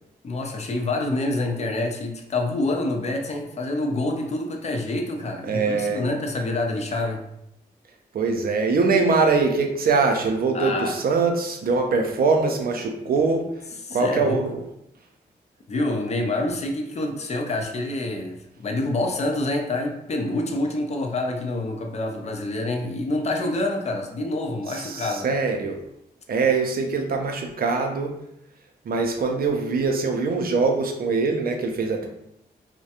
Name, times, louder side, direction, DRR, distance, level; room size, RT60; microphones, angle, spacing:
voice 1, 0.2-7.2 10.5-11.0 13.8-14.4 15.7-25.3, left 2 dB, 40° left, 3 dB, 0.5 m, -27 dB
voice 2, 5.4-6.0 8.1-13.4 13.9-14.6 24.7-25.8 26.3-28.1 28.8-32.1, right 4 dB, 55° right, 3 dB, 0.5 m, -23 dB
2.3 x 2.1 x 2.8 m, 0.81 s
supercardioid pair, 40°, 18 cm